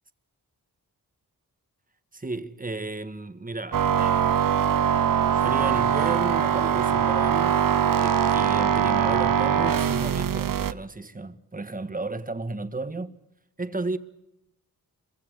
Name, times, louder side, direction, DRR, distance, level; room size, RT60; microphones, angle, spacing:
voice 1, 2.1-4.2 5.3-7.6 7.9-13.1 13.6-14.0, right 3 dB, 25° right, 1.6 m, -33 dB
sound 1, 3.7-10.7, right 8 dB, 65° right, 0.9 m, -22 dB
27.0 x 23.5 x 6.5 m
wide cardioid pair, 90°, 36 cm